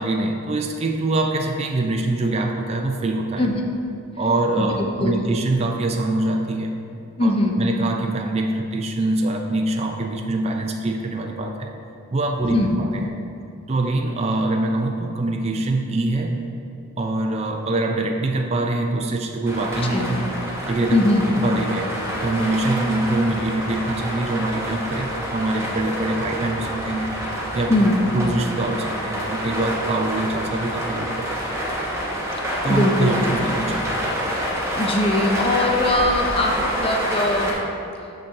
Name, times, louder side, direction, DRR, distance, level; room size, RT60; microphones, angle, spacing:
voice 1, 0.0-3.4 4.2-6.8 7.2-11.7 12.1-13.0 13.7-16.4 17.0-20.2 20.7-21.0 21.4-21.9 22.2-27.1 27.5-27.7 28.1-31.6 32.6-34.0, right 2 dB, 30° right, 2 dB, 0.3 m, -24 dB
voice 2, 5.0-5.3 7.2-7.6 12.4-12.8 19.9-20.1 20.9-21.3 27.7-28.0 32.7-33.2 34.7-37.6, left 1 dB, 25° left, 1 dB, 0.6 m, -21 dB
sound 1, 19.5-37.5, equal, 10° right, 0.8 m, -27 dB
6.4 x 5.9 x 3.7 m, 2.7 s
head